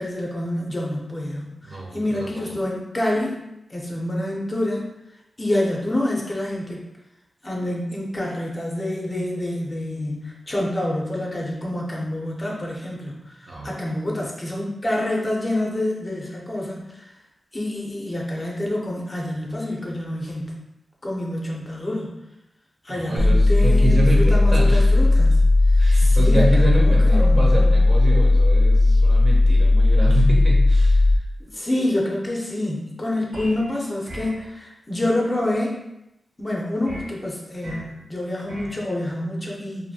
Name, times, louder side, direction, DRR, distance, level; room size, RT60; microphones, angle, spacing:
voice 1, 0.0-3.4 3.7-4.9 5.4-6.9 7.4-17.2 17.5-20.6 21.0-22.1 22.8-27.8 31.4-35.8 36.4-39.9, left 1 dB, 25° left, -3 dB, 0.5 m, -27 dB
voice 2, 1.6-2.4 13.5-13.7 22.9-24.9 25.8-31.0, right 2 dB, 50° right, -2 dB, 0.6 m, -27 dB
sound 1, 23.2-31.2, left 2 dB, 80° left, 0.4 m, -16 dB
sound 2, 33.3-33.7 34.1-34.4 36.9-37.1 37.6-37.9 38.5-38.8, equal, 90° right, 0.9 m, -37 dB
2.6 x 2.5 x 2.7 m, 0.88 s
wide cardioid pair, 105°, 0 cm